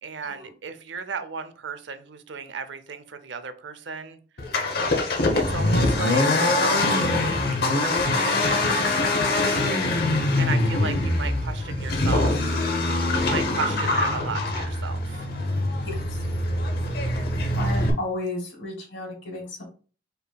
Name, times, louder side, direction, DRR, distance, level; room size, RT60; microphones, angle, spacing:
voice 1, 0.0-4.2 5.3-6.4 7.7-8.6 10.4-12.6 13.2-15.3, right 5 dB, 70° right, 11 dB, 0.6 m, -35 dB
Accelerating revving vroom, 4.4-17.9, left 2 dB, 55° left, 0.8 m, -23 dB
voice 2, 15.8-16.3 17.5-19.6, left 2 dB, 80° left, -1 dB, 2.4 m, -34 dB
5.2 x 4.4 x 2.3 m, 0.38 s
head